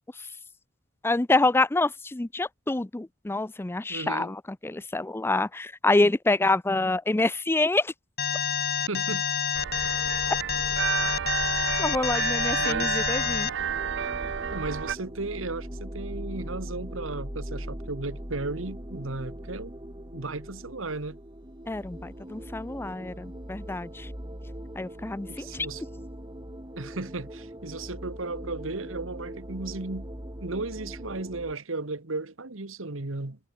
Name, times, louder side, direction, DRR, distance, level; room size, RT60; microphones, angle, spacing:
voice 1, 1.0-7.9 11.8-13.5 21.7-24.1 24.8-25.7, left 2 dB, 10° left, 0.4 m, -26 dB
voice 2, 3.9-4.3 8.7-9.2 12.6-13.0 14.5-19.7 20.1-21.2 25.3-25.8 26.8-30.1 30.4-33.4, right 3 dB, 80° right, 1.6 m, -35 dB
Alarm, 8.2-13.5, left 8 dB, 55° left, 2.1 m, -28 dB
sound 1, 9.5-15.0, right 7 dB, 65° right, 0.7 m, -31 dB
sound 2, 13.6-31.5, equal, 25° right, 4.5 m, -40 dB
head